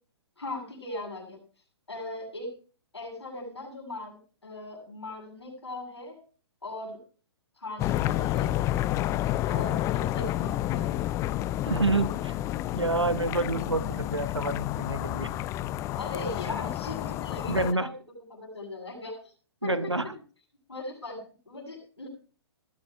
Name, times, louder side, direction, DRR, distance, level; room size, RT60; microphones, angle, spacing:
voice 1, 0.4-1.4 1.9-2.5 2.9-6.2 6.6-7.0 7.6-8.5 9.5-11.0 15.9-19.2 19.6-20.1 20.7-22.1, left 2 dB, 80° left, -3 dB, 7.5 m, -39 dB
sound 1, 7.8-17.7, left 14 dB, 20° left, 0.6 m, -30 dB
voice 2, 11.6-12.3 12.7-15.3 17.5-17.9 19.6-20.1, right 2 dB, 90° right, 12 dB, 1.2 m, -28 dB
20.0 x 14.0 x 2.3 m, 0.38 s
figure-of-eight pair, 120°, 14 cm